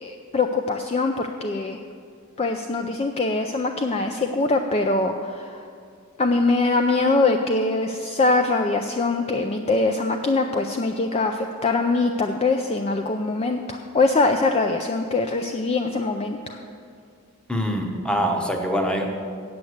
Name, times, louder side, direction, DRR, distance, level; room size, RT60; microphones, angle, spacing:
voice 1, 0.0-1.8 2.4-5.6 6.2-16.6, left 3 dB, 25° left, 5 dB, 0.4 m, -23 dB
voice 2, 17.5-19.1, equal, 5° left, 3 dB, 0.8 m, -24 dB
8.4 x 7.7 x 7.9 m, 2.3 s
head